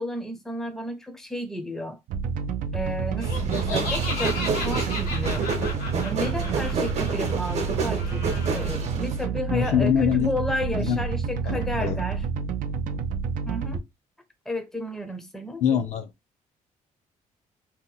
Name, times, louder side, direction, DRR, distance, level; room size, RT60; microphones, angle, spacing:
voice 1, 0.0-2.0 2.7-5.5 6.0-8.3 8.5-12.2 13.4-13.8 14.5-15.6, left 1 dB, 5° left, 0.5 m, -32 dB
sound 1, 2.1-13.8, right 6 dB, 75° right, 0.4 m, -29 dB
Laughter, 3.2-8.8, left 4 dB, 90° left, 1.2 m, -35 dB
sound 2, 3.2-9.3, right 4 dB, 50° right, 0.8 m, -30 dB
voice 2, 9.5-10.3 10.8-11.0 11.4-12.0 15.6-16.1, left 8 dB, 55° left, 0.5 m, -23 dB
2.8 x 2.1 x 3.9 m
cardioid pair, 145°, 14 cm